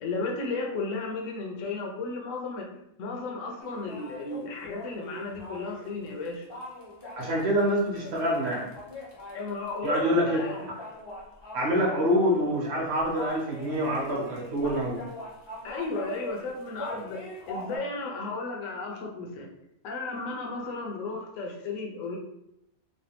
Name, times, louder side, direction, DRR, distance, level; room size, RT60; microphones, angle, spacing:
voice 1, 0.0-2.7 3.0-6.5 9.3-10.7 11.9-12.0 15.6-19.5 19.8-22.2, left 3 dB, 70° left, 0 dB, 1.0 m, -34 dB
sound 1, 3.6-17.8, left 1 dB, 35° left, 0.4 m, -42 dB
voice 2, 7.2-8.7 9.8-10.4 11.5-15.0, equal, 50° right, -3 dB, 1.1 m, -26 dB
3.2 x 2.2 x 2.8 m, 0.82 s
omnidirectional pair, 1.5 m